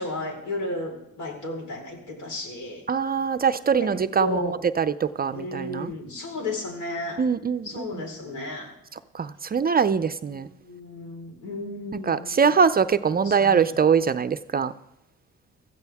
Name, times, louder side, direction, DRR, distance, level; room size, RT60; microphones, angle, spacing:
voice 1, 0.0-2.8 3.8-3.9 4.2-4.6 5.3-7.3 7.6-8.7 10.3-12.4 13.2-13.7, left 2 dB, 70° left, 2 dB, 4.4 m, -33 dB
voice 2, 2.9-5.9 7.2-8.0 9.2-10.5 12.0-14.7, right 6 dB, 30° right, 12 dB, 0.5 m, -23 dB
16.5 x 14.5 x 3.5 m, 0.87 s
cardioid pair, 90°, 30 cm